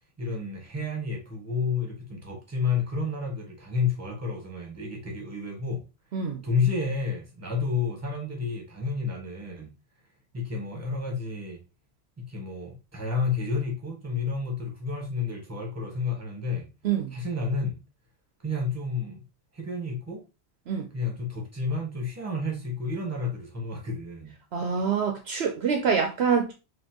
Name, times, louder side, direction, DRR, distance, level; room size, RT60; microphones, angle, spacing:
voice 1, 0.2-5.8 6.4-9.7 10.3-11.6 12.2-16.7 17.1-17.8 18.4-19.2 19.5-20.2 20.9-24.3, left 4 dB, 15° right, 1.2 m, -30 dB
voice 2, 24.5-26.5, right 6 dB, 65° right, 0.8 m, -25 dB
4.3 x 2.9 x 2.9 m
omnidirectional pair, 1.2 m